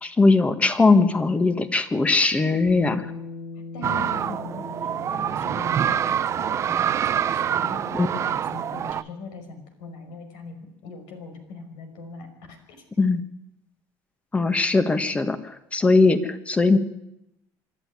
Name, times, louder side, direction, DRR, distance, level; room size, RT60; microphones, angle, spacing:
voice 1, 0.0-3.1 7.9-8.1 13.0-13.2 14.3-16.8, left 3 dB, 15° left, 10 dB, 1.5 m, -20 dB
Bass guitar, 2.7-8.9, left 3 dB, 65° left, 3.2 m, -41 dB
voice 2, 3.7-12.8, left 4 dB, 80° left, 6 dB, 5.5 m, -41 dB
sound 1, 3.8-9.0, right 9 dB, 40° right, 0.7 m, -26 dB
26.0 x 11.5 x 9.7 m, 0.88 s
cardioid pair, 125°, 8 cm